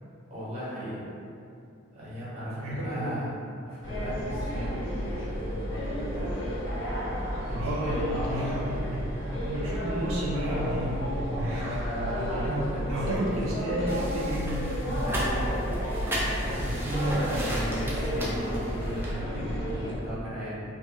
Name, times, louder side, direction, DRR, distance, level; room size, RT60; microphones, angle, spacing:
voice 1, 0.3-1.0 1.9-3.4 3.7-6.4 7.5-8.6 11.5-13.4 15.0-15.4 16.4-20.6, right 1 dB, 30° right, -10 dB, 0.9 m, -35 dB
voice 2, 2.6-3.3 7.5-11.8 12.3-12.5 12.9-14.7, right 1 dB, 80° right, -4 dB, 0.4 m, -32 dB
sound 1, 3.8-19.9, equal, 60° left, 0.6 m, -32 dB
sound 2, 13.9-19.1, equal, 10° right, 0.3 m, -35 dB
2.4 x 2.3 x 2.9 m, 2.5 s
head